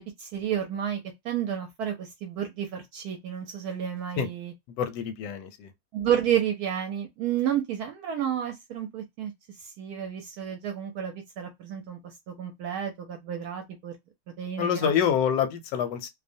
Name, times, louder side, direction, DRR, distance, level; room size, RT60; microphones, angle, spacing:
voice 1, 0.0-4.5 5.9-9.3 9.6-13.9 14.4-14.9, right 9 dB, 70° right, 1.0 m, -31 dB
voice 2, 4.7-5.7 14.6-16.1, left 8 dB, 85° left, 1.2 m, -26 dB
2.8 x 2.1 x 2.5 m
omnidirectional pair, 1.8 m